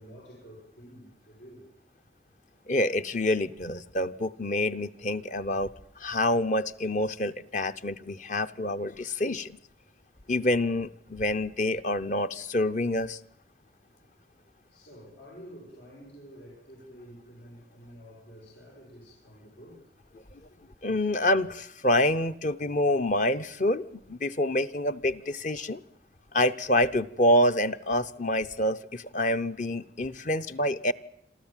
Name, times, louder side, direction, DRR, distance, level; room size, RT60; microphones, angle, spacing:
voice 1, 0.0-1.7 14.7-19.9 20.3-20.6 20.9-21.2 22.6-22.7, equal, 85° left, -4 dB, 7.5 m, -50 dB
voice 2, 2.7-5.7 6.0-9.6 10.3-13.2 20.8-25.8 26.3-30.9, left 1 dB, 40° left, 10 dB, 0.8 m, -27 dB
27.0 x 14.0 x 9.0 m, 0.73 s
head